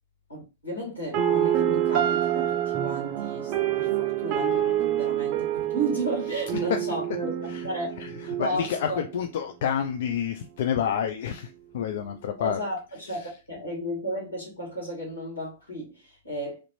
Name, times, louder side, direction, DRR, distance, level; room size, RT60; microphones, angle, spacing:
voice 1, 0.3-7.3 7.6-9.0 12.4-16.6, right 1 dB, 85° left, 2.0 m, -34 dB
sound 1, 1.1-9.1, right 11 dB, 40° right, 0.4 m, -27 dB
voice 2, 6.3-6.8 7.4-12.6 12.9-13.3, left 8 dB, 55° left, 0.4 m, -30 dB
3.2 x 2.5 x 3.2 m
figure-of-eight pair, 105°, 0 cm